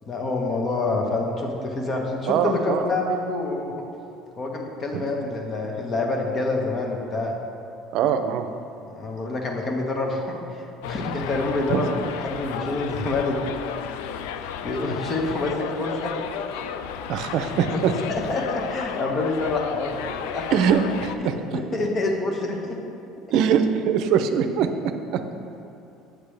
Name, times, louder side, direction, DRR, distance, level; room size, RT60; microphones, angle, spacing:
voice 1, 0.0-3.7 4.4-7.3 8.9-13.4 14.6-16.1 17.4-20.5 21.2-22.8, left 2 dB, 35° left, 1 dB, 1.2 m, -27 dB
voice 2, 2.3-2.9 4.9-5.0 7.9-8.5 11.7-11.9 17.1-17.9 20.5-21.3 23.3-24.7 25.1-25.2, right 8 dB, 65° right, 8 dB, 0.5 m, -22 dB
Subway metro underground, 10.8-21.2, left 8 dB, 85° left, 0.3 m, -33 dB
8.1 x 7.7 x 3.3 m, 2.6 s
supercardioid pair, 110°, 0 cm